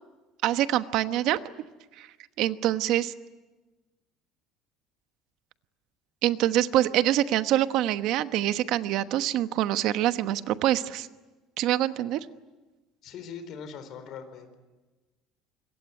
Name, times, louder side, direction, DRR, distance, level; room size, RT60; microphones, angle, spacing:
voice 1, 0.4-1.4 2.0-2.1 2.4-3.1 6.2-11.1 11.6-12.2, right 13 dB, 55° right, 11 dB, 1.1 m, -25 dB
voice 2, 13.0-14.6, left 6 dB, 45° left, 9 dB, 4.3 m, -41 dB
26.0 x 23.0 x 9.7 m, 1.2 s
cardioid pair, 170°, 0 cm